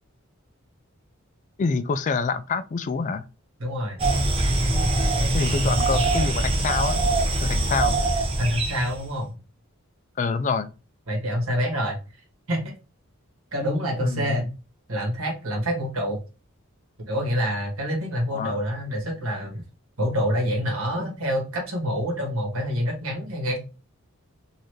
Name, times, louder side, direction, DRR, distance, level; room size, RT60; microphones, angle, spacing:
voice 1, 1.6-3.3 5.3-7.0 7.4-8.0 10.2-10.7 14.0-14.5 18.3-18.6, left 4 dB, 35° left, 0.3 m, -26 dB
voice 2, 3.6-4.0 8.4-9.4 11.1-12.0 12.5-12.7 13.5-14.5 14.9-16.2 17.1-19.6 20.0-23.6, equal, 85° right, 1.6 m, -26 dB
sound 1, 4.0-9.0, right 2 dB, 25° right, 0.6 m, -23 dB
4.0 x 2.6 x 3.1 m
head